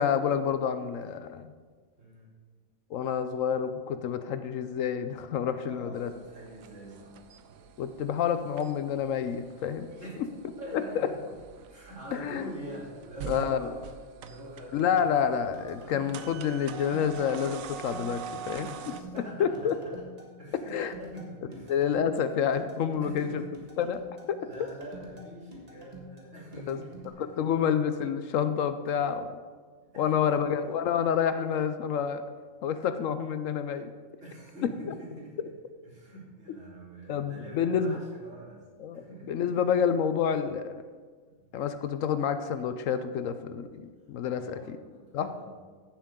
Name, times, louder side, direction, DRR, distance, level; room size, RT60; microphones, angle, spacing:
voice 1, 0.0-1.5 2.9-6.1 7.8-9.9 12.1-12.4 13.3-13.7 14.7-18.7 19.4-19.7 20.7-20.9 21.7-23.4 23.8-24.0 24.3-24.4 26.7-26.8 27.4-29.4 30.0-32.2 32.6-33.9 37.1-38.0 38.8-40.7 41.5-44.8 45.1-45.3, left 8 dB, 70° left, 10 dB, 1.0 m, -28 dB
voice 2, 2.0-2.3 5.6-7.2 10.0-10.2 10.4-11.2 11.6-13.8 14.1-15.0 15.8-16.6 18.6-20.0 20.4-21.8 23.0-23.5 24.4-27.2 29.9-30.6 34.2-35.5 35.8-38.6 38.9-39.6 41.2-41.5 44.2-45.6, right 1 dB, 60° right, -6 dB, 3.6 m, -45 dB
sound 1, 5.9-19.0, right 7 dB, 75° right, 1.1 m, -45 dB
sound 2, 15.5-27.1, right 1 dB, 30° right, 1.7 m, -48 dB
15.0 x 7.5 x 3.7 m, 1.5 s
omnidirectional pair, 1.5 m